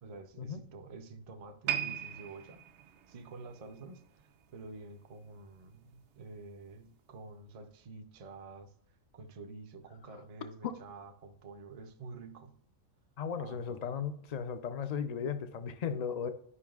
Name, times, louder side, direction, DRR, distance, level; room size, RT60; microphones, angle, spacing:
voice 1, 0.0-2.6 3.1-8.7 9.1-12.5 13.4-13.8, right 3 dB, 45° right, 0.5 m, -49 dB
sound 1, 1.7-5.0 5.3-5.5 6.2-6.3, right 11 dB, 65° right, 0.8 m, -39 dB
voice 2, 13.2-16.3, left 7 dB, 55° left, 0.4 m, -36 dB
11.0 x 5.4 x 2.4 m
omnidirectional pair, 1.4 m